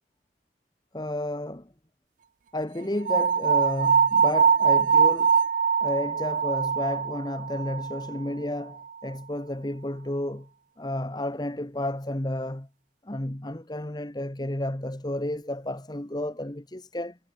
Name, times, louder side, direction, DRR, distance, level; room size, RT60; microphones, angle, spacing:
voice 1, 0.9-1.7 2.5-5.4 5.8-10.5 10.8-12.7 13.0-17.2, left 1 dB, 25° left, 1.2 m, -32 dB
sound 1, 3.1-8.2, right 6 dB, 45° right, 0.3 m, -22 dB
head